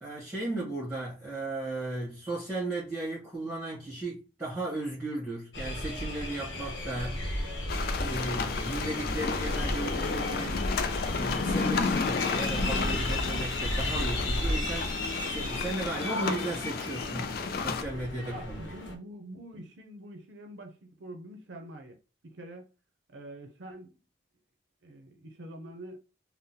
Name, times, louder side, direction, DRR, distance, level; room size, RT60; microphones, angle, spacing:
voice 1, 0.0-7.3 7.9-10.8 11.1-18.7, right 2 dB, 15° right, 1.2 m, -35 dB
sound 1, 5.5-19.0, left 1 dB, 90° left, 0.8 m, -34 dB
sound 2, 7.7-17.8, left 5 dB, 55° left, 0.4 m, -32 dB
voice 2, 18.2-22.0 22.2-22.7 23.1-23.9 24.8-26.0, right 1 dB, 80° right, 0.6 m, -45 dB
3.7 x 2.1 x 2.7 m
head